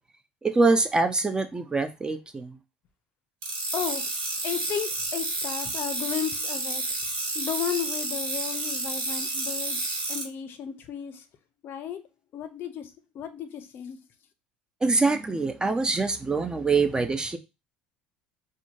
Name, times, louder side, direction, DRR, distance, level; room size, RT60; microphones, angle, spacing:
voice 1, 0.4-2.6 14.8-17.4, right 3 dB, 15° right, 0.4 m, -24 dB
sound 1, 3.4-10.2, right 2 dB, 65° right, 1.4 m, -30 dB
voice 2, 4.4-6.8 7.3-11.2 11.6-12.0 12.3-12.9 13.1-14.0, left 9 dB, 45° left, 0.5 m, -34 dB
3.6 x 2.2 x 2.6 m
figure-of-eight pair, 65°, 5 cm